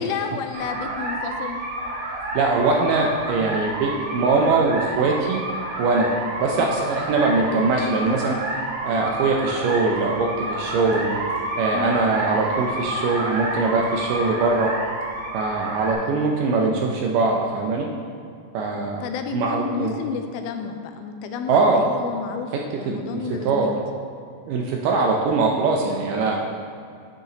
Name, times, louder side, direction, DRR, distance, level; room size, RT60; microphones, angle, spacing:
voice 1, 0.0-1.6 6.6-6.7 11.7-12.1 16.0-16.7 19.0-22.5 22.8-23.7, left 5 dB, 85° left, 6 dB, 2.3 m, -31 dB
sound 1, 0.5-15.9, right 1 dB, 65° right, 2.6 m, -29 dB
voice 2, 2.3-5.4 5.8-6.1 6.4-8.4 8.8-11.2 11.6-14.7 15.3-17.9 18.5-19.0 19.3-19.9 21.5-21.8 22.9-23.7 24.5-26.4, right 3 dB, 80° right, 0 dB, 1.9 m, -22 dB
9.9 x 6.6 x 2.9 m, 2.4 s
omnidirectional pair, 4.4 m